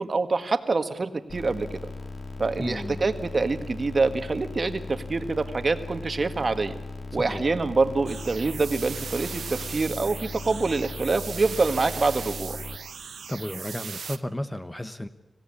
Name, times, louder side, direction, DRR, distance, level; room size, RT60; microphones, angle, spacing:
voice 1, 0.0-1.9 2.4-6.8 7.1-12.6, right 3 dB, 45° right, 9 dB, 1.7 m, -26 dB
sound 1, 1.3-12.8, left 3 dB, 45° left, 2.5 m, -38 dB
voice 2, 2.6-3.0 7.2-7.4 13.3-15.1, left 1 dB, 15° left, 9 dB, 1.1 m, -33 dB
sound 2, 8.1-14.2, right 6 dB, 85° right, 0.8 m, -38 dB
25.0 x 16.5 x 9.9 m, 1.0 s
wide cardioid pair, 85°, 0 cm